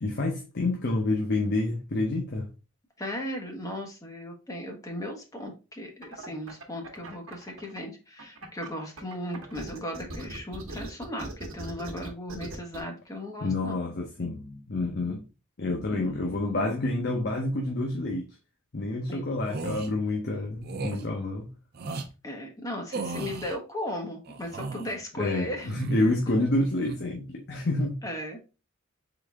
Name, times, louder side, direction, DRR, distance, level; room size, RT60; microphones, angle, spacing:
voice 1, 0.0-2.5 13.4-15.3 15.6-18.3 18.7-21.5 25.2-28.0, left 2 dB, 50° left, 0.8 m, -28 dB
voice 2, 3.0-13.8 15.9-16.1 19.1-19.2 22.2-25.7 28.0-28.4, left 1 dB, 15° left, 1.1 m, -36 dB
sound 1, 6.0-7.8 8.2-12.8, right 2 dB, 70° right, 1.1 m, -40 dB
sound 2, 19.4-19.9 20.6-21.0 21.7-22.1 22.9-23.6 24.3-25.0 25.6-26.2 26.6-27.0, right 3 dB, 50° right, 0.6 m, -36 dB
3.9 x 3.8 x 3.5 m
head